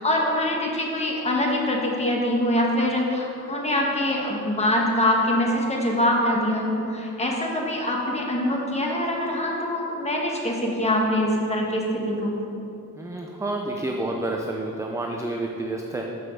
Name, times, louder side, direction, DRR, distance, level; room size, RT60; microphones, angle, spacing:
voice 1, 0.0-12.3, left 1 dB, 20° left, -1 dB, 1.1 m, -24 dB
voice 2, 13.0-16.1, right 2 dB, 10° right, 0 dB, 0.4 m, -29 dB
5.9 x 5.4 x 6.3 m, 2.7 s
wide cardioid pair, 145°, 35 cm